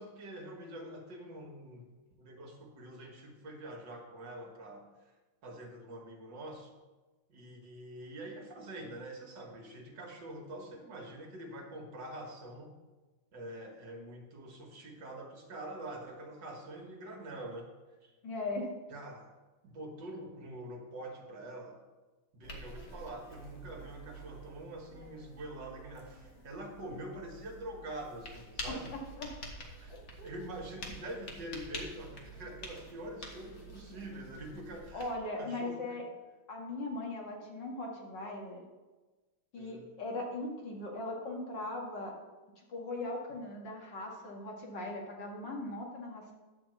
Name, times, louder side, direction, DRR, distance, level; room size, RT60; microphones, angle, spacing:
voice 1, 0.0-1.9 2.2-4.9 5.4-6.7 7.3-12.7 13.3-17.7 18.0-18.1 18.9-19.3 19.6-21.8 22.3-28.9 29.8-29.9 30.2-35.1 35.4-36.0 39.6-39.9, right 1 dB, 60° right, 1 dB, 1.9 m, -45 dB
voice 2, 18.2-18.7 28.7-29.3 29.9-30.5 34.9-36.1 36.5-38.6 39.5-42.1 42.7-46.3, left 2 dB, 60° left, -1 dB, 2.2 m, -39 dB
sound 1, 22.4-35.2, equal, 40° left, 1.4 m, -48 dB
10.5 x 4.5 x 7.6 m, 1.2 s
omnidirectional pair, 2.2 m